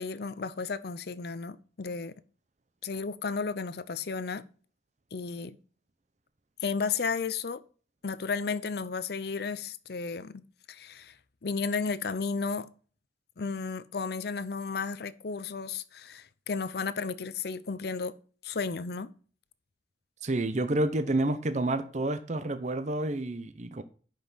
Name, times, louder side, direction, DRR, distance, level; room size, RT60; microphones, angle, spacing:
voice 1, 0.0-2.2 2.8-4.4 5.1-5.6 6.6-7.6 8.0-10.4 10.7-11.2 11.4-12.7 13.4-18.1 18.4-19.1, left 5 dB, 60° left, 0.6 m, -33 dB
voice 2, 20.2-23.8, right 2 dB, 40° right, 0.7 m, -29 dB
10.5 x 5.6 x 4.0 m
head